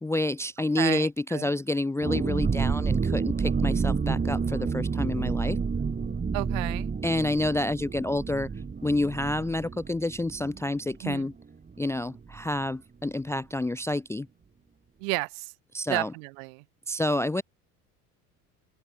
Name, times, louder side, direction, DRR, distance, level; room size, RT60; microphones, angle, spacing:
voice 1, 0.0-5.6 7.0-8.5 8.8-11.3 11.8-14.3 15.7-16.1 16.9-17.4, left 2 dB, 5° left, 0.6 m, -28 dB
voice 2, 0.8-1.5 6.3-6.9 11.0-11.3 15.0-15.5 15.9-16.6, right 33 dB, 65° right, 4.7 m, -32 dB
sound 1, 2.0-11.4 11.7-11.8 12.1-12.4, right 5 dB, 20° right, 1.9 m, -29 dB
open air
figure-of-eight pair, 65°, 44 cm